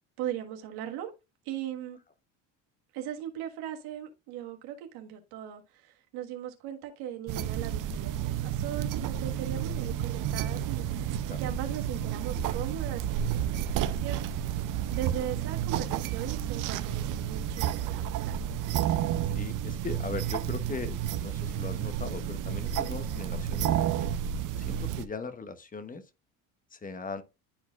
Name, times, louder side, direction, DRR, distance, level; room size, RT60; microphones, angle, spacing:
voice 1, 0.2-1.1 1.4-2.0 2.9-14.5 14.9-18.4, right 11 dB, 75° right, 1.5 m, -39 dB
sound 1, 7.3-25.0, right 10 dB, 55° right, 0.7 m, -31 dB
voice 2, 19.2-24.2 24.6-26.0 26.7-27.2, left 4 dB, 20° left, 1.0 m, -39 dB
11.5 x 4.1 x 2.4 m
supercardioid pair, 100°, 38 cm